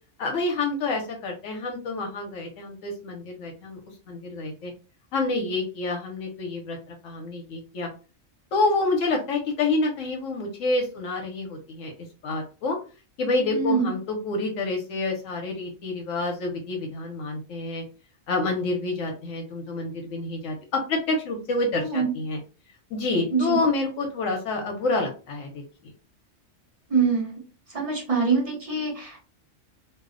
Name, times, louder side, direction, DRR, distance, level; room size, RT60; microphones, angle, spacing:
voice 1, 0.2-3.8 4.1-4.7 5.1-7.9 8.5-11.9 12.2-12.8 13.2-17.8 18.3-22.4 22.9-25.6, left 3 dB, 80° left, 2 dB, 1.0 m, -28 dB
voice 2, 13.5-13.9 21.8-22.1 23.3-23.6 26.9-27.4 27.7-29.2, right 5 dB, 30° right, -2 dB, 0.7 m, -24 dB
2.5 x 2.0 x 2.4 m, 0.34 s
omnidirectional pair, 1.3 m